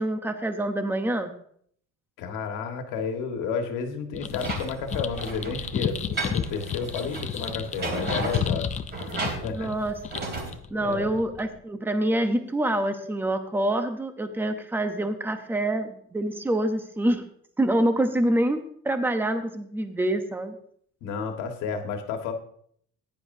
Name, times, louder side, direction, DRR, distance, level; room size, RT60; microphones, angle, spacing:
voice 1, 0.0-1.3 9.5-9.9 10.7-17.2 17.6-20.5, right 1 dB, 5° right, 7 dB, 0.8 m, -26 dB
voice 2, 2.2-8.7 9.4-9.7 10.7-11.1 21.0-22.3, left 5 dB, 75° left, 4 dB, 1.7 m, -31 dB
sound 1, 4.1-11.6, left 8 dB, 25° left, 0.4 m, -33 dB
sound 2, 4.3-10.5, right 3 dB, 30° right, 3.4 m, -34 dB
15.5 x 10.0 x 2.7 m, 0.64 s
cardioid pair, 170°, 32 cm